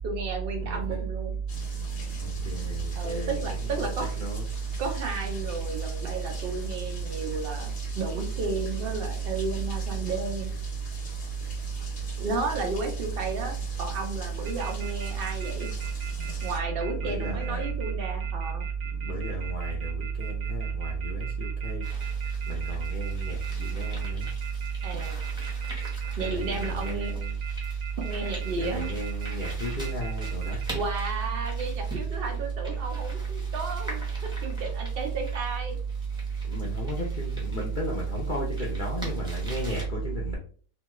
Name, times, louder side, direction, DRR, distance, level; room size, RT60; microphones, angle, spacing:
voice 1, 0.0-1.3 3.0-4.1 4.8-10.5 12.2-15.7 16.4-18.6 24.8-25.2 26.2-27.2 28.0-28.9 30.7-35.8, right 3 dB, 70° right, 0.5 m, -33 dB
voice 2, 0.5-1.0 2.2-4.4 17.0-17.7 19.0-21.8 22.5-24.3 26.2-27.3 28.6-30.6 36.5-40.4, right 3 dB, 65° left, 0.4 m, -31 dB
sound 1, 1.5-16.6, left 3 dB, 45° left, 1.0 m, -43 dB
sound 2, 14.4-30.6, right 8 dB, 90° right, 1.2 m, -42 dB
sound 3, 21.8-39.8, equal, 5° right, 0.6 m, -45 dB
2.9 x 2.3 x 2.9 m
omnidirectional pair, 1.7 m